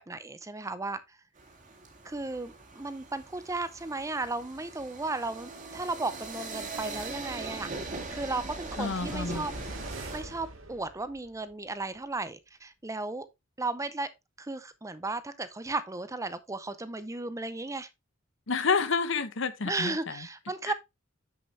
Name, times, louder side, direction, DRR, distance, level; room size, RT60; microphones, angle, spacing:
voice 1, 0.1-1.2 2.0-9.5 10.1-13.3 13.6-14.1 14.4-17.9 19.6-20.7, right 3 dB, 15° right, 0.6 m, -35 dB
sound 1, 1.4-10.2, right 3 dB, 40° right, 2.1 m, -41 dB
sound 2, 6.3-11.5 11.9-12.0, right 1 dB, 85° right, 2.0 m, -44 dB
voice 2, 8.7-9.5 18.5-20.3 20.6-20.7, left 5 dB, 65° left, 0.9 m, -29 dB
7.9 x 6.7 x 3.2 m
head